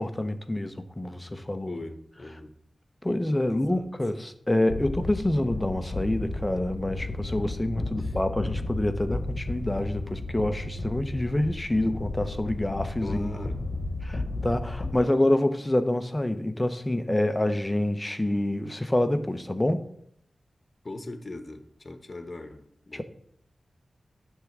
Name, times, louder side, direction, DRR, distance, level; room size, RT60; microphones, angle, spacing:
voice 1, 0.0-1.8 3.0-13.3 14.0-19.8 22.9-23.0, left 1 dB, 20° left, 0.9 m, -27 dB
voice 2, 1.7-2.5 3.4-3.9 8.0-8.2 13.0-13.6 20.8-23.0, left 2 dB, 45° left, 1.3 m, -40 dB
sound 1, 4.7-14.9, left 2 dB, 65° left, 1.1 m, -33 dB
10.0 x 3.7 x 7.4 m
cardioid pair, 50°, 0 cm